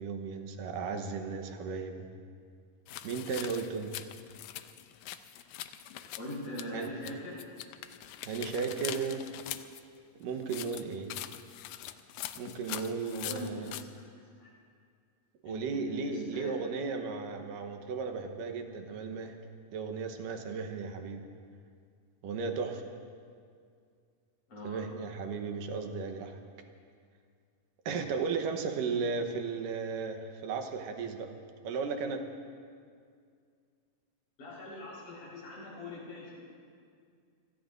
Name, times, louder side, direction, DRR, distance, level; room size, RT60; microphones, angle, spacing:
voice 1, 0.0-2.1 3.0-4.0 6.7-6.9 8.2-9.3 10.2-11.1 12.4-13.8 15.4-19.4 19.7-21.3 22.2-22.8 24.6-26.4 27.9-31.3 31.6-32.3, right 5 dB, 80° right, 5 dB, 2.7 m, -35 dB
sound 1, 2.9-7.1 7.4-9.8 10.4-13.8, left 12 dB, 80° left, 1.7 m, -42 dB
voice 2, 6.1-7.4 13.1-13.6 14.4-14.5 15.4-16.5 24.5-24.9 34.4-36.4, left 1 dB, 65° left, -5 dB, 6.0 m, -42 dB
27.0 x 18.5 x 2.6 m, 2.2 s
omnidirectional pair, 3.9 m